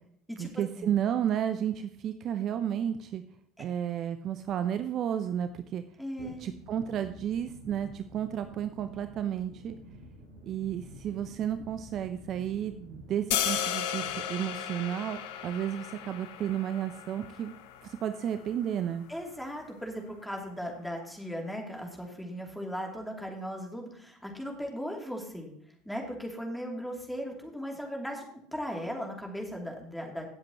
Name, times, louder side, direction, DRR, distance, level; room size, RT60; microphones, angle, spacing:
voice 1, 0.4-3.2 3.6-5.8 6.4-9.8 10.4-17.5 17.8-19.1, right 9 dB, 45° right, 10 dB, 0.6 m, -32 dB
voice 2, 6.0-6.4 19.1-25.5 25.8-28.2 28.5-30.3, equal, ahead, 0 dB, 2.9 m, -37 dB
sound 1, 6.2-13.1, equal, 85° right, 3.9 m, -49 dB
sound 2, 13.3-19.4, left 10 dB, 65° left, 0.9 m, -35 dB
17.0 x 7.6 x 3.0 m, 0.65 s
figure-of-eight pair, 70°, 0 cm